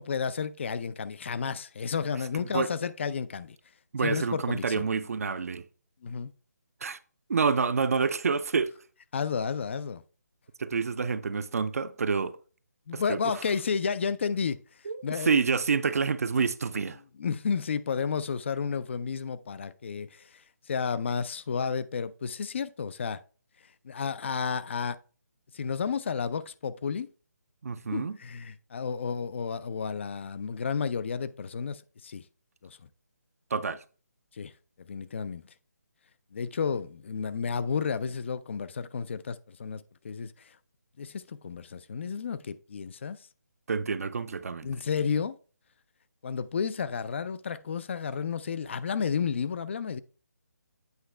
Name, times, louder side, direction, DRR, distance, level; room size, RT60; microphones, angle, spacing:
voice 1, 0.0-3.6 4.0-4.8 6.0-6.3 9.1-10.0 12.9-14.6 15.0-15.3 17.2-20.3 20.7-23.2 23.8-25.0 25.5-27.1 27.9-32.2 32.6-32.8 34.4-34.5 34.9-35.4 36.3-40.3 41.0-43.2 44.6-45.4 46.2-50.0, left 6 dB, 40° left, 0.4 m, -31 dB
voice 2, 2.3-2.7 3.9-5.6 6.8-7.0 7.3-8.7 10.6-12.4 12.9-13.2 14.8-17.0 27.6-28.2 33.5-33.8 43.7-44.7, right 5 dB, 55° right, 0.5 m, -28 dB
8.1 x 4.7 x 3.3 m
figure-of-eight pair, 155°, 9 cm